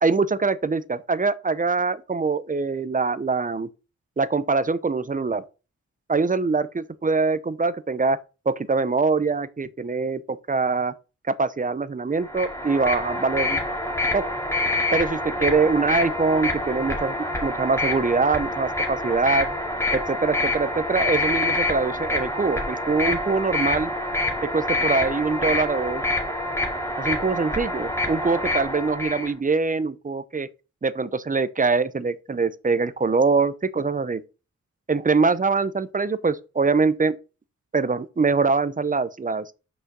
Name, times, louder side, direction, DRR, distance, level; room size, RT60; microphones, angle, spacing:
voice 1, 0.0-3.7 4.2-5.4 6.1-8.2 8.5-10.9 11.3-13.6 14.1-14.3 14.9-19.5 19.9-23.9 24.5-26.0 27.0-30.5 30.8-34.2 34.9-37.2 37.7-39.5, right 4 dB, 25° right, 0.6 m, -23 dB
sound 1, 12.2-29.3, left 2 dB, 10° left, 2.3 m, -26 dB
5.9 x 5.6 x 6.6 m
wide cardioid pair, 90°, 31 cm